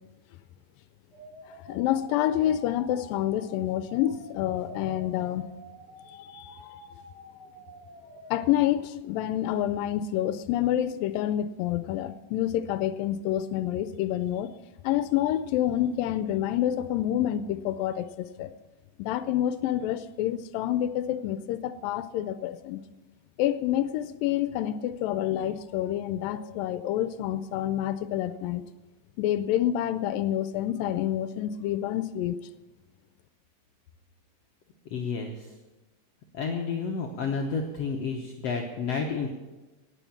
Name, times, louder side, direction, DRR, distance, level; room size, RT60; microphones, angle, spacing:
sound 1, 1.1-8.5, equal, 10° left, 4.6 m, -49 dB
voice 1, 1.5-5.5 6.1-6.6 8.1-14.5 14.8-18.1 18.4-18.5 19.0-22.8 23.4-28.6 29.2-32.4, left 12 dB, 85° left, 12 dB, 2.3 m, -28 dB
voice 2, 34.8-35.5 36.3-39.3, left 5 dB, 65° left, 1 dB, 1.8 m, -31 dB
18.5 x 7.7 x 7.2 m, 1.1 s
omnidirectional pair, 4.0 m